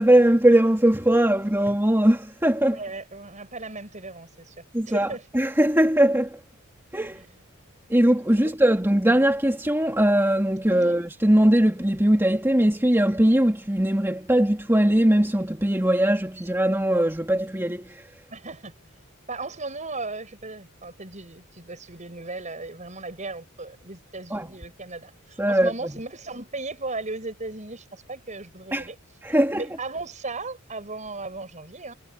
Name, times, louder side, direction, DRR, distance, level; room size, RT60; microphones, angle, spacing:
voice 1, 0.0-2.8 4.7-6.4 6.9-7.2 7.9-18.1 24.3-24.5 25.4-25.9 28.7-28.9 29.2-29.6, right 1 dB, 10° right, 2.5 m, -20 dB
voice 2, 2.7-4.5 4.9-5.2 7.1-7.2 8.4-8.5 10.7-11.0 18.3-18.7 19.3-29.0 29.5-31.9, right 3 dB, 35° right, 7.4 m, -36 dB
head